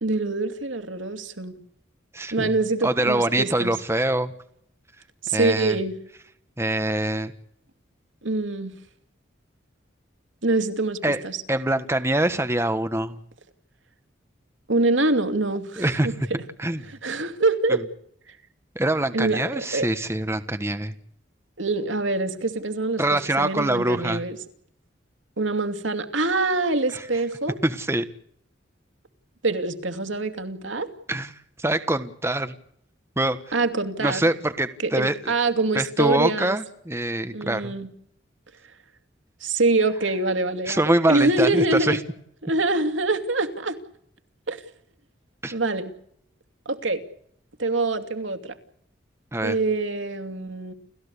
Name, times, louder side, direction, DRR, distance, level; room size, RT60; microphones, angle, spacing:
voice 1, 0.0-1.6 2.3-3.7 5.2-6.0 8.2-8.7 10.4-11.4 14.7-16.1 16.9-17.8 19.1-19.9 21.6-24.4 25.4-27.6 29.4-30.9 33.5-34.2 34.8-36.5 37.3-37.9 39.4-42.0 42.4-43.8 44.5-44.6 45.5-45.9 46.7-47.0 47.6-48.6 49.4-50.7, right 2 dB, 90° right, 8 dB, 2.7 m, -25 dB
voice 2, 2.1-2.5 2.8-4.3 5.3-5.8 6.6-7.3 11.0-11.2 11.5-13.2 15.8-16.1 16.6-16.8 17.7-17.8 18.7-20.9 23.0-24.2 26.9-27.0 27.6-28.1 31.1-31.3 31.6-32.5 33.2-33.5 34.0-35.3 35.7-37.7 40.7-42.0 45.4-45.5 49.3-49.6, right 1 dB, 15° right, 10 dB, 1.4 m, -24 dB
30.0 x 14.5 x 8.4 m, 0.70 s
head